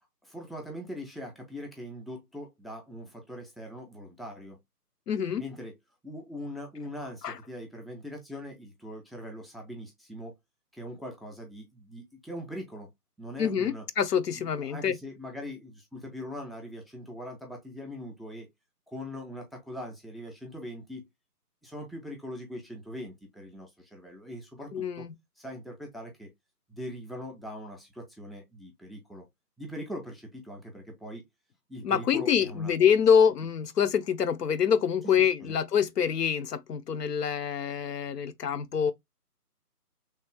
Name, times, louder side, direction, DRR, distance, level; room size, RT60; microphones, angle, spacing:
voice 1, 0.2-4.6 5.4-5.8 6.0-10.3 10.7-12.9 13.2-13.8 14.4-18.5 18.9-21.1 21.6-25.1 25.4-26.3 26.7-29.3 29.6-31.3 31.7-33.0 35.2-35.6, equal, ahead, 0.5 m, -41 dB
voice 2, 5.1-5.4 7.2-7.4 13.4-15.0 24.7-25.1 31.8-38.9, left 7 dB, 80° left, 0.6 m, -26 dB
3.2 x 2.1 x 3.5 m
hypercardioid pair, 180°, 47 cm